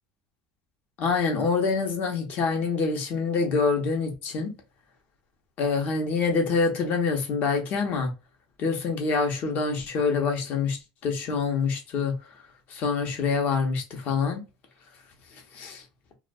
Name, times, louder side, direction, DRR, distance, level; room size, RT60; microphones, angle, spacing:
voice 1, 1.0-4.5 5.6-8.1 8.6-10.8 11.0-12.2 12.7-14.4 15.5-15.8, left 4 dB, 55° left, 0.9 m, -26 dB
2.4 x 2.2 x 2.3 m
supercardioid pair, 110°, 3 cm